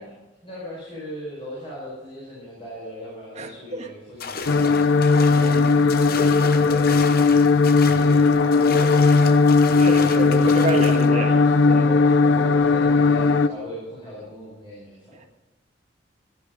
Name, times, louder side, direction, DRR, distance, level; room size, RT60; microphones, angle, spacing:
voice 1, 0.0-5.9 6.6-11.2 11.7-15.3, equal, 25° left, -7 dB, 5.2 m, -38 dB
voice 2, 3.3-3.9 5.3-5.9 9.8-11.9 15.2-15.3, right 1 dB, 35° right, 3 dB, 1.6 m, -30 dB
sound 1, 4.2-11.1, left 5 dB, 50° left, 1.0 m, -34 dB
sound 2, 4.5-13.5, left 4 dB, 75° left, 0.6 m, -17 dB
15.5 x 10.5 x 5.2 m, 1.0 s
head